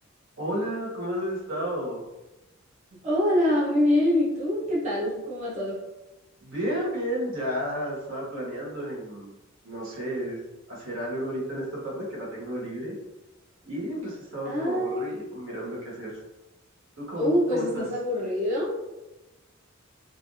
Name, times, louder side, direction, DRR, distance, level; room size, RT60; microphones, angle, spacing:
voice 1, 0.4-2.1 6.4-9.3 9.6-12.9 13.6-16.2 17.0-17.8, equal, 65° right, -5 dB, 1.0 m, -32 dB
voice 2, 3.0-5.8 14.4-15.2 17.2-18.9, left 1 dB, 35° right, -8 dB, 0.8 m, -25 dB
3.2 x 2.4 x 2.6 m, 1.0 s
head